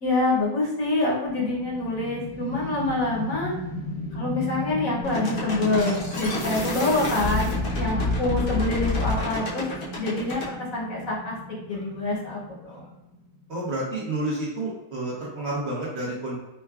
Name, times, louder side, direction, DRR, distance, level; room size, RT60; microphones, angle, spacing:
voice 1, 0.0-3.5 4.1-9.7 10.0-11.4 11.7-12.8, left 2 dB, 65° left, -3 dB, 1.2 m, -26 dB
sound 1, 1.3-13.5, equal, 30° left, 0.7 m, -36 dB
sound 2, 5.0-10.5, left 2 dB, 80° left, 1.4 m, -28 dB
voice 2, 13.5-16.4, right 1 dB, 50° right, -6 dB, 1.1 m, -30 dB
5.6 x 2.2 x 2.3 m, 0.99 s
omnidirectional pair, 1.6 m